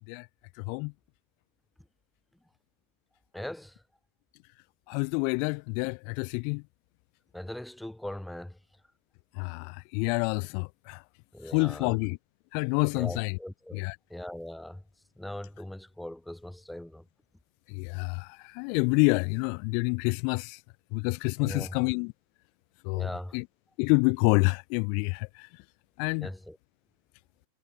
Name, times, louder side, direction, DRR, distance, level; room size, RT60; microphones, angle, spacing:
voice 1, 3.3-3.8 7.3-8.6 11.3-11.9 12.9-13.8 14.1-14.8 15.2-17.0 21.4-21.8 22.9-23.4 26.2-26.6, left 1 dB, 5° left, 0.9 m, -40 dB
voice 2, 4.9-6.6 9.4-11.0 11.5-12.2 12.5-13.4 13.7-14.0 17.7-20.6 20.9-22.1 22.8-23.4 23.8-25.5 26.0-26.3, left 40 dB or more, 45° left, 0.4 m, -28 dB
figure-of-eight pair, 90°, 0 cm